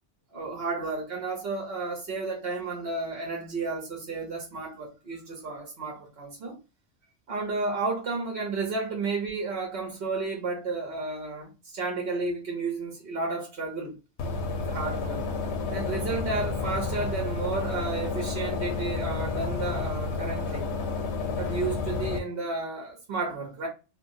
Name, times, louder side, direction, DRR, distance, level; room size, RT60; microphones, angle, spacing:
voice 1, 0.3-6.6 7.3-13.9 14.6-15.3 15.7-20.7 21.4-23.7, right 3 dB, 70° right, 1.1 m, -32 dB
sound 1, 14.2-22.2, left 4 dB, 90° left, 0.9 m, -31 dB
2.9 x 2.6 x 2.6 m
omnidirectional pair, 1.1 m